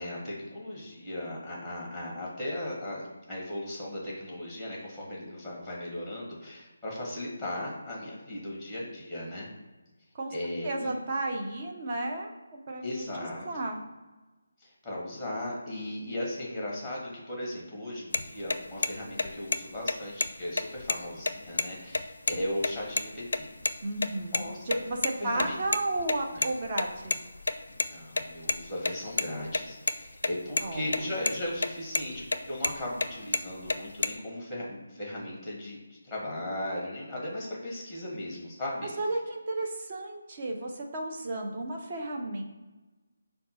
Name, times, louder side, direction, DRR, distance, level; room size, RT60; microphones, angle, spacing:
voice 1, 0.0-9.5 10.3-10.9 12.8-13.7 14.6-23.5 24.3-24.8 25.2-25.6 26.3-26.5 27.8-38.9, left 1 dB, ahead, -4 dB, 1.1 m, -37 dB
voice 2, 10.6-13.1 13.4-13.8 23.8-27.2 30.6-31.1 39.0-42.4, right 2 dB, 30° right, 1 dB, 0.7 m, -33 dB
sound 1, 18.1-18.2 18.5-18.6 18.8-18.9 19.2-19.6 19.9-20.0 20.2-20.3 20.6-21.6 21.9-22.0 22.3-22.4 22.6-23.0 23.3-23.7 24.0-25.1 25.3-27.9 28.2-29.9 30.2-30.3 30.6-31.0 31.2-31.7 31.9-33.1 33.3-34.1, left 3 dB, 75° left, 0.4 m, -28 dB
5.2 x 2.3 x 4.2 m, 1.2 s
figure-of-eight pair, 165°, 0 cm